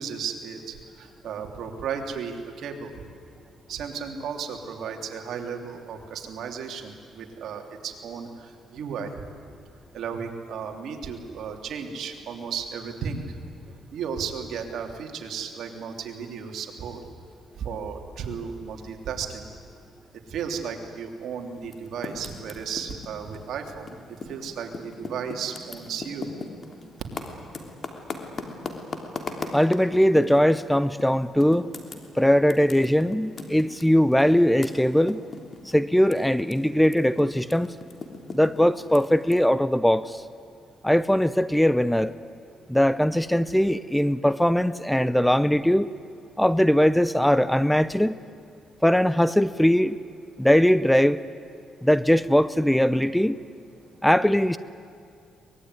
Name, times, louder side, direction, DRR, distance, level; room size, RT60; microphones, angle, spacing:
voice 1, 0.0-2.9 3.7-9.1 9.9-13.4 13.9-17.0 17.6-19.5 20.3-24.0 24.2-26.3, right 6 dB, 70° right, 3 dB, 3.2 m, -34 dB
Typing, 21.6-24.4 24.7-30.6 31.0-31.1 31.4-36.5 36.8-39.3, left 4 dB, 40° left, 3.1 m, -38 dB
voice 2, 29.5-31.7 32.1-35.2 35.6-37.7 38.3-40.2 40.8-42.1 42.7-45.9 46.4-48.1 48.8-50.0 50.4-51.2 51.8-53.4 54.0-54.6, equal, 5° left, 15 dB, 0.7 m, -20 dB
23.5 x 21.0 x 9.7 m, 2.4 s
cardioid pair, 90°, 0 cm